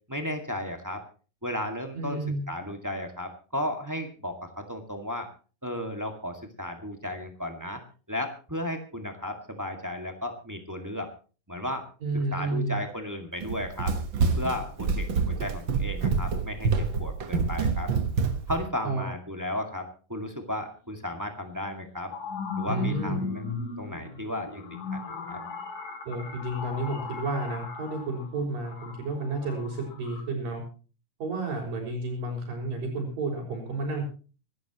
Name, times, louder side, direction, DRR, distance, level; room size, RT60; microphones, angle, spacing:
voice 1, 0.1-1.0 1.4-2.2 2.5-5.3 5.6-7.8 8.1-11.1 11.5-11.8 12.3-13.9 14.3-17.9 18.5-22.1 22.6-23.4 23.8-24.6 24.9-25.0 25.3-25.4, left 1 dB, 10° right, 4 dB, 1.1 m, -34 dB
voice 2, 1.9-2.4 12.0-12.8 18.8-19.1 22.7-23.2 26.1-30.6 31.2-34.0, right 2 dB, 85° right, -7 dB, 6.9 m, -31 dB
Run, 13.4-18.6, right 5 dB, 50° right, 1.4 m, -27 dB
sound 1, 20.9-21.0 21.7-30.2, left 5 dB, 70° left, 4.8 m, -37 dB
25.5 x 13.0 x 3.0 m, 0.36 s
omnidirectional pair, 3.9 m